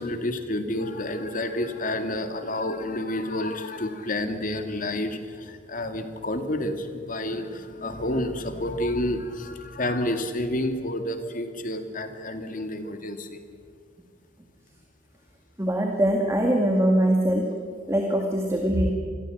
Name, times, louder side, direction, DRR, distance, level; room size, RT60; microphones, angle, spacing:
voice 1, 0.0-13.4, left 1 dB, 40° left, 7 dB, 2.3 m, -29 dB
voice 2, 15.6-17.5 17.9-18.9, right 1 dB, 15° right, 1 dB, 2.2 m, -22 dB
27.5 x 21.0 x 8.0 m, 2.1 s
head